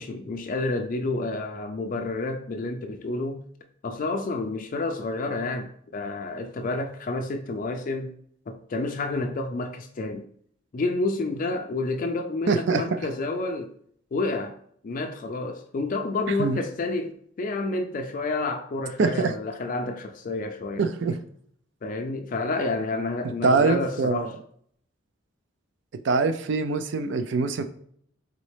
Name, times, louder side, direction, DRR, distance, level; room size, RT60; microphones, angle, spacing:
voice 1, 0.0-3.4 3.8-8.1 8.5-10.2 10.7-13.7 14.1-14.6 14.8-20.9 21.8-24.3, left 2 dB, 40° left, 0.4 m, -29 dB
voice 2, 12.5-12.8 16.4-16.6 19.0-19.3 20.8-21.2 23.4-24.3 26.0-27.6, right 4 dB, 60° right, 0.4 m, -23 dB
4.1 x 3.8 x 3.2 m
head